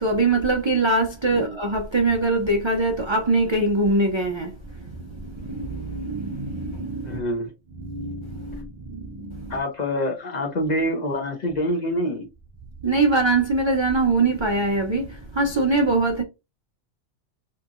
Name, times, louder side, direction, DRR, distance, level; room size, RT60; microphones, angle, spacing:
voice 1, 0.0-4.5 5.0-7.2 7.8-8.7 8.9-9.5 12.8-16.2, right 2 dB, 45° right, 0.3 m, -23 dB
voice 2, 7.0-7.5 9.5-12.3, equal, 45° left, 0.7 m, -26 dB
2.7 x 2.6 x 2.4 m
omnidirectional pair, 1.2 m